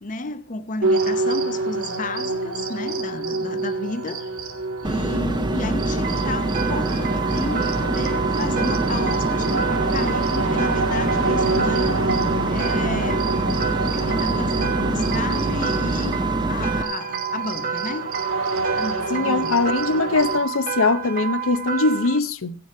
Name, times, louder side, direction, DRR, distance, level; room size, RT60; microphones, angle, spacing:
voice 1, 0.0-4.3 4.8-12.0 12.5-13.3 13.9-18.1 18.7-19.6, left 3 dB, 40° left, 0.8 m, -32 dB
sound 1, 0.8-20.4, right 3 dB, 75° right, 2.3 m, -27 dB
sound 2, 4.8-16.8, right 2 dB, 20° right, 0.7 m, -25 dB
sound 3, 6.0-22.2, right 8 dB, 40° right, 1.2 m, -30 dB
voice 2, 19.1-22.6, left 3 dB, 80° left, 0.8 m, -21 dB
16.5 x 7.1 x 4.7 m
head